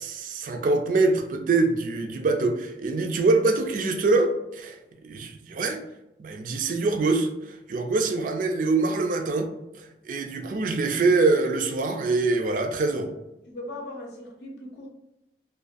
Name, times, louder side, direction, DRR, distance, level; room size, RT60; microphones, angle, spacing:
voice 1, 0.0-4.8 5.0-5.8 6.2-9.5 9.7-13.1, right 3 dB, 50° right, 0.3 m, -24 dB
voice 2, 13.5-14.9, left 1 dB, 65° left, 0.6 m, -38 dB
2.4 x 2.2 x 2.4 m
head